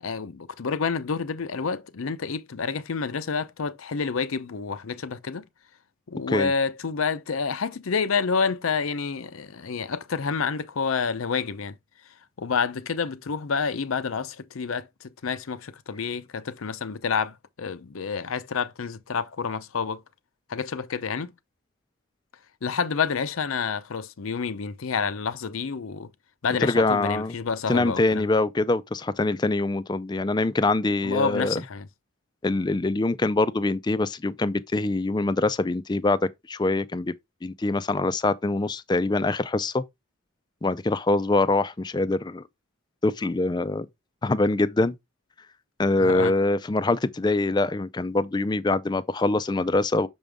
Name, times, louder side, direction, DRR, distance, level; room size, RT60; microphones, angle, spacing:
voice 1, 0.0-5.4 6.1-11.7 12.4-20.0 20.5-21.3 22.6-26.1 26.4-28.3 31.0-31.9 46.0-46.3, left 5 dB, 85° left, 0.6 m, -28 dB
voice 2, 26.6-27.3 27.7-31.6 32.4-36.2 36.5-37.1 37.4-39.8 40.6-42.4 43.0-43.9 44.2-44.9 45.8-50.1, left 2 dB, 20° left, 0.3 m, -24 dB
6.1 x 5.3 x 3.4 m
head